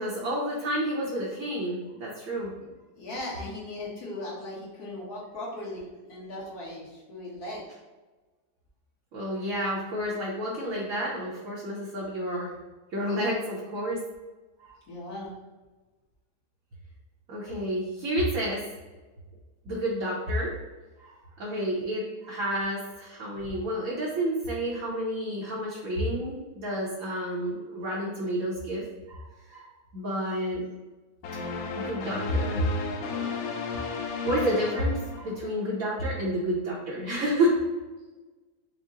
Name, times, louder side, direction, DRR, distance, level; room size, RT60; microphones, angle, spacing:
voice 1, 0.0-2.5 9.1-12.5 12.9-14.0 14.6-14.7 17.3-18.6 19.6-20.5 21.0-29.2 29.5-30.6 31.4-32.6 33.0-33.1 34.2-37.7, equal, 55° right, -6 dB, 1.1 m, -30 dB
voice 2, 2.9-7.6 14.9-15.3 23.4-23.5, left 1 dB, 55° left, -6 dB, 1.7 m, -38 dB
sound 1, 31.2-35.7, left 5 dB, 85° left, 0.7 m, -34 dB
5.4 x 2.2 x 3.7 m, 1.2 s
omnidirectional pair, 2.1 m